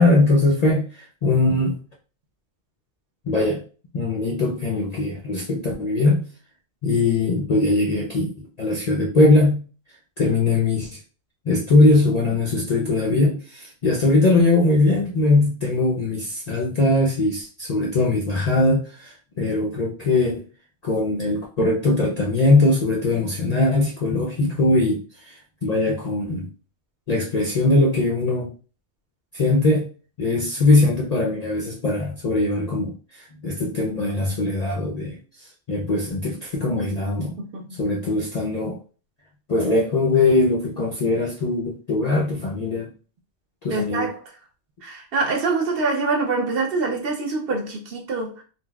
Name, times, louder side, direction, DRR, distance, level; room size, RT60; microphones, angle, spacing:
voice 1, 0.0-1.7 3.3-3.6 3.9-6.2 6.8-9.6 10.2-11.0 11.5-20.4 20.8-25.4 25.6-26.5 27.1-28.5 29.3-29.9 30.2-37.3 37.8-38.8 39.5-42.9 43.6-44.1, left 2 dB, 55° left, 0.4 m, -21 dB
voice 2, 43.7-44.1 44.8-48.4, right 3 dB, 60° right, 0.7 m, -25 dB
3.9 x 2.1 x 2.2 m
omnidirectional pair, 1.3 m